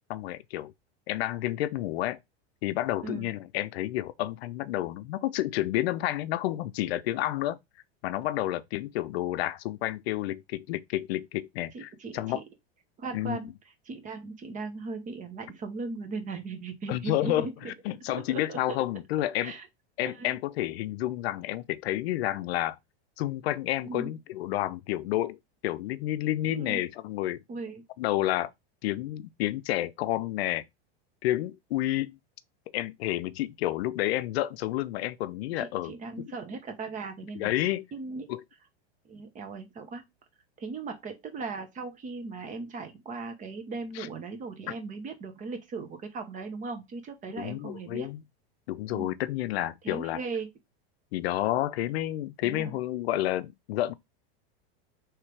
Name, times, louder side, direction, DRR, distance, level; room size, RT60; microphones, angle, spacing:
voice 1, 0.1-0.7 1.1-2.2 2.6-7.6 8.0-12.4 13.1-13.4 16.9-19.5 20.0-22.8 23.2-25.4 25.6-27.4 28.0-28.5 28.8-30.6 31.2-32.2 32.7-36.3 37.4-37.9 38.3-38.4 44.0-44.1 47.4-48.2 48.7-50.2 51.1-53.9, left 14 dB, 75° left, 0.5 m, -30 dB
voice 2, 3.0-3.3 11.7-12.4 13.0-13.5 13.8-17.5 17.9-18.8 19.4-19.7 20.0-20.4 23.8-24.1 26.5-26.8 27.5-27.8 35.6-37.5 37.9-38.3 39.0-40.0 40.6-48.1 48.9-49.2 49.8-50.5 52.4-52.7, right 4 dB, 25° right, 0.9 m, -38 dB
3.3 x 3.2 x 4.6 m
supercardioid pair, 135°, 31 cm